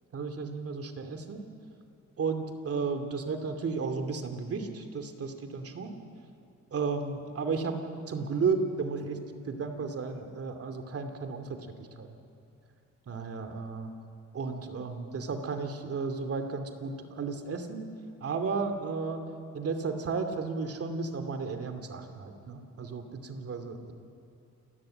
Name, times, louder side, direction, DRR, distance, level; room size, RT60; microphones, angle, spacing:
voice 1, 0.1-1.4 2.2-5.9 6.7-7.8 8.1-11.7 12.0-12.2 13.1-13.9 14.3-17.9 18.2-19.2 19.5-23.9, right 4 dB, 50° right, 6 dB, 2.7 m, -33 dB
29.0 x 14.0 x 8.9 m, 2.6 s
cardioid pair, 90°, 30 cm